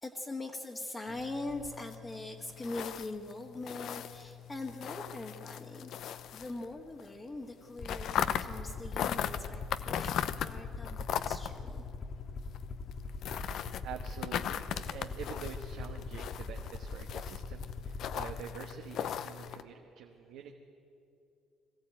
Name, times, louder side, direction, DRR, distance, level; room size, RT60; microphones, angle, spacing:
voice 1, 0.0-11.8, left 2 dB, 25° left, -1 dB, 1.7 m, -42 dB
sound 1, 1.1-7.1 7.3-19.6, left 9 dB, 65° left, 0.7 m, -39 dB
Aircraft, 7.8-18.4, left 3 dB, 40° left, 1.1 m, -42 dB
voice 2, 13.1-20.5, right 8 dB, 75° right, 2 dB, 1.2 m, -47 dB
21.0 x 14.5 x 8.9 m, 2.6 s
supercardioid pair, 85°, 0 cm